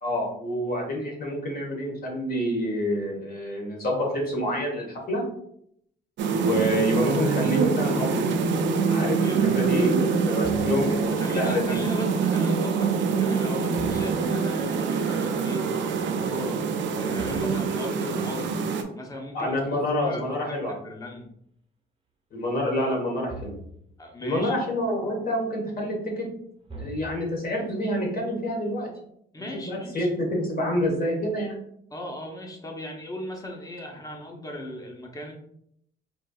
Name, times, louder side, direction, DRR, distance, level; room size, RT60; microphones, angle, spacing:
voice 1, 0.0-5.2 6.3-8.2 8.9-9.2 9.5-11.8 19.3-20.7 22.3-23.5 24.2-26.3 26.8-28.9 29.5-31.6, left 1 dB, 45° left, -1 dB, 1.3 m, -27 dB
sound 1, 6.2-18.8, right 5 dB, 70° right, 0.5 m, -25 dB
voice 2, 9.2-9.5 9.8-9.9 11.2-18.6 18.9-19.6 20.1-20.5 20.8-21.3 24.0-24.6 29.3-30.1 31.9-35.3, left 1 dB, 20° left, 1 dB, 0.8 m, -37 dB
sound 2, 10.4-11.2 13.7-14.6 17.2-18.3 23.3-24.0 26.7-27.5, right 1 dB, 25° right, 0.8 m, -40 dB
4.4 x 2.6 x 2.3 m, 0.71 s
cardioid pair, 90°, 20 cm